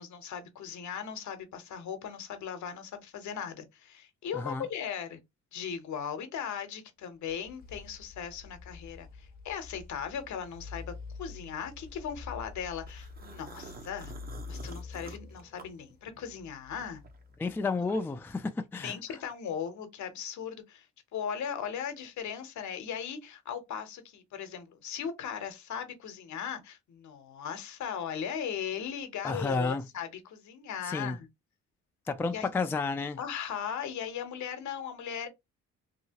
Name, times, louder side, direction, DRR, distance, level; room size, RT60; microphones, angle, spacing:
voice 1, 0.0-5.2 5.5-10.9 11.2-14.1 14.5-17.0 17.8-17.9 18.8-20.9 21.1-31.3 32.3-32.5 33.2-35.3, left 8 dB, 70° left, 0.9 m, -38 dB
voice 2, 4.3-4.7 17.4-19.0 29.2-29.8 30.8-31.2 32.1-33.2, left 4 dB, 10° left, 0.3 m, -31 dB
sound 1, 7.1-17.9, left 4 dB, 30° left, 0.7 m, -47 dB
sound 2, 12.9-16.4 16.8-18.3, right 5 dB, 30° right, 0.6 m, -50 dB
2.8 x 2.7 x 2.8 m
cardioid pair, 90°, 30 cm